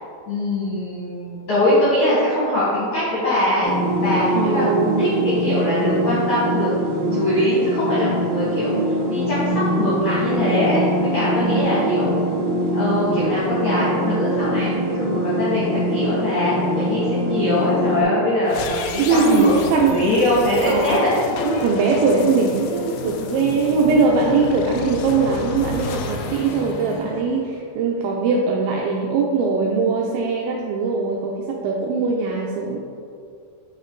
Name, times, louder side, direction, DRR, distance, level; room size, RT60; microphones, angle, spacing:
voice 1, 0.3-3.7 4.0-4.7 5.0-8.7 9.1-12.2 12.7-21.1, left 1 dB, 65° left, -10 dB, 1.9 m, -22 dB
sound 1, 3.6-18.0, right 1 dB, 65° right, 2.4 m, -23 dB
voice 2, 4.4-5.2 11.4-12.0 18.2-18.4 19.0-20.0 20.6-21.0 21.4-32.8, right 4 dB, 85° right, -1 dB, 2.6 m, -21 dB
sound 2, 18.4-27.7, left 4 dB, 85° left, 2.6 m, -31 dB
8.6 x 4.2 x 3.8 m, 2.3 s
omnidirectional pair, 5.7 m